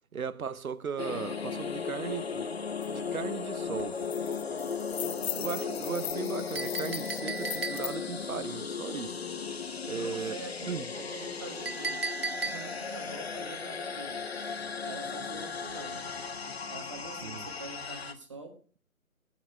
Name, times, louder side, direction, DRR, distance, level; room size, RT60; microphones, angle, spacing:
voice 1, 0.1-2.5 2.9-4.0 5.3-9.2 9.8-10.9 17.2-17.5, right 6 dB, 75° right, 0.9 m, -37 dB
sound 1, 1.0-18.1, left 5 dB, 45° left, 0.9 m, -36 dB
sound 2, 2.8-2.9 3.2-3.5 3.8-8.0, left 9 dB, 80° left, 0.6 m, -39 dB
voice 2, 5.0-5.8 9.9-12.0 12.4-14.2 14.8-16.0 16.7-18.6, right 3 dB, 20° right, 1.3 m, -45 dB
Chink clink, 6.5-8.1 11.7-12.9, right 4 dB, 45° right, 0.5 m, -36 dB
15.5 x 9.1 x 3.4 m
figure-of-eight pair, 165°, 43 cm